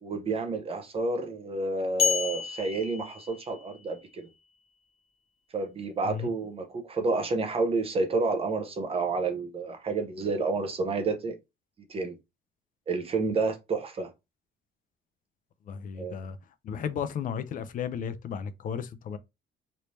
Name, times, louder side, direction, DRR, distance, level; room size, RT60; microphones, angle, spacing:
voice 1, 0.0-4.3 5.5-11.4 11.9-12.1 12.9-14.1 16.0-16.2, right 3 dB, 30° right, 0.7 m, -30 dB
sound 1, 2.0-3.8, left 6 dB, 25° left, 1.0 m, -30 dB
voice 2, 15.7-16.4 16.6-19.2, left 7 dB, 45° left, 0.4 m, -34 dB
3.3 x 2.7 x 3.0 m
cardioid pair, 150°, 20 cm